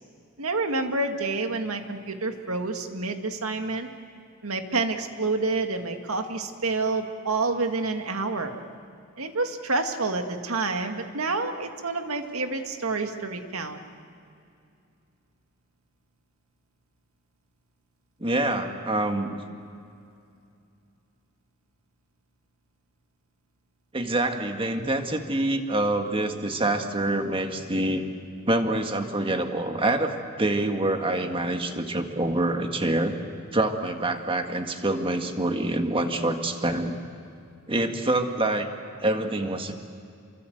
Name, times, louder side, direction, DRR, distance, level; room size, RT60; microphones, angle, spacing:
voice 1, 0.4-3.9 4.4-8.6 9.2-13.8, right 3 dB, 80° right, 5 dB, 2.0 m, -28 dB
voice 2, 18.2-19.4 23.9-28.1 28.5-33.1 33.5-37.0 37.7-38.7 39.0-39.7, right 1 dB, 25° right, 5 dB, 1.8 m, -26 dB
28.0 x 23.5 x 8.0 m, 2.5 s
head